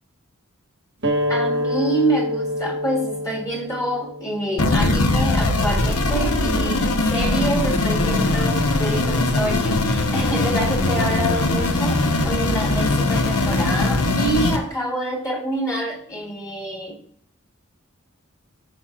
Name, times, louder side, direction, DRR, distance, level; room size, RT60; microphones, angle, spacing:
sound 1, 1.0-6.2, left 1 dB, 55° right, 1.2 m, -27 dB
voice 1, 1.3-17.0, right 1 dB, 15° left, -1 dB, 1.3 m, -27 dB
sound 2, 4.6-14.6, left 2 dB, 85° left, 0.9 m, -20 dB
14.5 x 5.8 x 2.4 m, 0.64 s
head